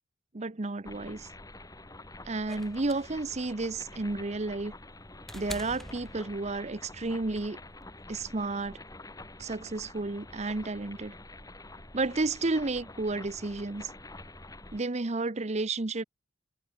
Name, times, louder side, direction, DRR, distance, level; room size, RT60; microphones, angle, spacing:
voice 1, 0.3-1.3 2.2-4.7 5.3-7.6 8.1-8.8 9.4-11.1 11.9-13.9 14.7-16.0, right 3 dB, 35° right, 0.8 m, -32 dB
sound 1, 0.8-14.8, left 2 dB, 20° left, 3.5 m, -48 dB
sound 2, 2.5-6.8 8.0-8.1, equal, ahead, 7.1 m, -46 dB
head